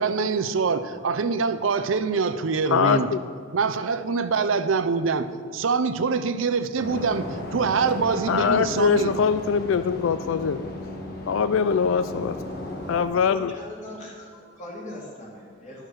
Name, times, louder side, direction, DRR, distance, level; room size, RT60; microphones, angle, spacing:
voice 1, 0.0-3.1 3.5-5.3 5.5-7.3 7.5-9.1, right 5 dB, 85° right, 0.6 m, -24 dB
voice 2, 2.7-3.3 8.3-10.7 11.3-12.4 12.9-13.6, left 6 dB, 85° left, 0.4 m, -23 dB
sound 1, 6.8-13.0, left 1 dB, 55° left, 1.5 m, -35 dB
voice 3, 13.0-15.9, left 1 dB, 40° left, 2.8 m, -41 dB
12.0 x 6.5 x 6.3 m
head